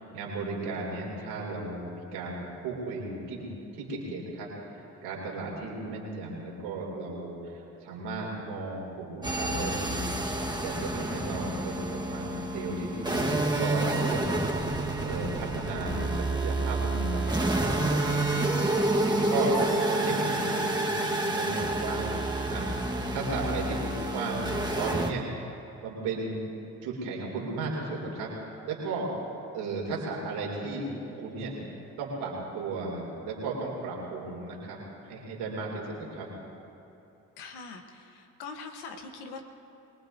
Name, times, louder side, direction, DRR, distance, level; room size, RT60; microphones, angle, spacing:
voice 1, 0.0-3.5 3.7-4.5 4.7-10.1 10.6-14.6 15.0-19.6 20.0-22.2 22.5-22.7 23.1-24.5 24.8-25.3 25.8-26.4 26.8-29.1 29.5-31.5 32.0-36.3, right 3 dB, 90° right, -3 dB, 3.0 m, -35 dB
sound 1, 9.2-25.1, right 2 dB, 10° right, 1.4 m, -29 dB
voice 2, 37.4-39.4, left 4 dB, 90° left, 5 dB, 1.2 m, -42 dB
24.5 x 19.0 x 2.7 m, 2.8 s
hypercardioid pair, 45°, 38 cm